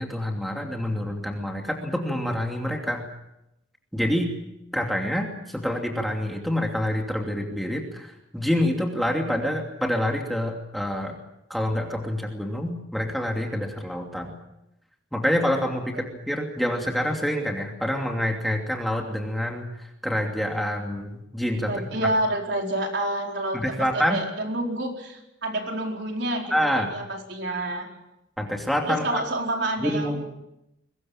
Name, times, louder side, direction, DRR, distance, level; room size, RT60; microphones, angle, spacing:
voice 1, 0.0-3.0 3.9-4.3 4.7-11.2 11.5-14.4 15.1-22.1 23.5-24.2 26.5-26.9 28.4-29.2 29.8-30.2, equal, ahead, 1 dB, 2.7 m, -27 dB
voice 2, 21.6-27.9 28.9-30.2, right 1 dB, 65° right, 1 dB, 4.6 m, -28 dB
23.0 x 20.5 x 7.4 m, 0.88 s
head